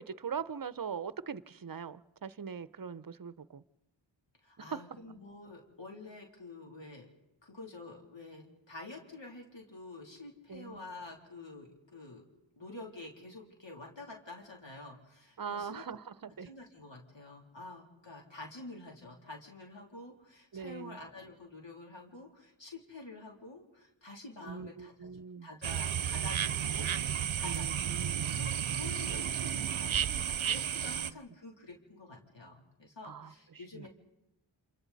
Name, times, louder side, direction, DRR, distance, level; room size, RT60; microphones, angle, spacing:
voice 1, 0.0-3.6 4.7-4.8 10.5-10.8 15.4-16.5 20.5-21.0 24.4-25.5 27.4-28.4 30.9-31.0 33.0-33.3 33.7-33.9, right 6 dB, 45° right, 0.7 m, -41 dB
voice 2, 4.4-7.1 7.4-12.2 12.6-15.8 16.4-25.1 25.4-33.9, left 2 dB, 70° left, 3.3 m, -48 dB
sound 1, 25.6-31.1, right 9 dB, 85° right, 0.7 m, -32 dB
28.5 x 27.0 x 4.1 m
wide cardioid pair, 55°, 46 cm